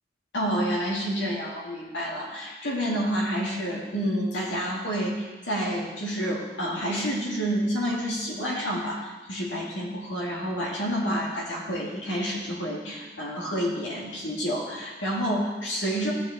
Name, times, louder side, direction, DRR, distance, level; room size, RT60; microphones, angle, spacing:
voice 1, 0.3-16.1, equal, 85° left, -4 dB, 2.2 m, -29 dB
15.0 x 5.9 x 3.6 m, 1.2 s
head